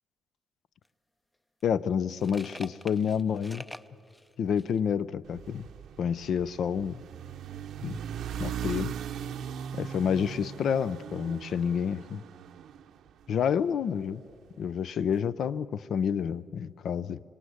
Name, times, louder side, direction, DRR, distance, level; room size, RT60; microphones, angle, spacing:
sound 1, 0.8-0.9 1.6-4.8, left 1 dB, 10° left, 0.6 m, -46 dB
voice 1, 1.6-3.6 4.4-5.7 6.0-7.0 7.8-8.0 8.4-8.9 9.7-12.2 13.3-14.2 14.6-17.2, left 7 dB, 65° left, 16 dB, 0.6 m, -29 dB
sound 2, 5.2-13.6, right 8 dB, 75° right, 0.7 m, -39 dB
25.0 x 18.0 x 9.6 m, 2.4 s
cardioid pair, 90°, 0 cm